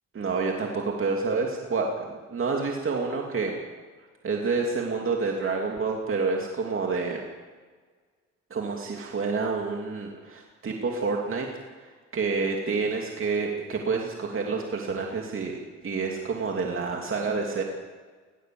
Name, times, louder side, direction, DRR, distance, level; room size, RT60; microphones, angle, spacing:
voice 1, 0.1-3.5 4.2-7.3 8.5-11.5 11.8-17.6, right 4 dB, 45° right, 1 dB, 2.7 m, -28 dB
19.5 x 17.5 x 7.8 m, 1.5 s
cardioid pair, 90°, 30 cm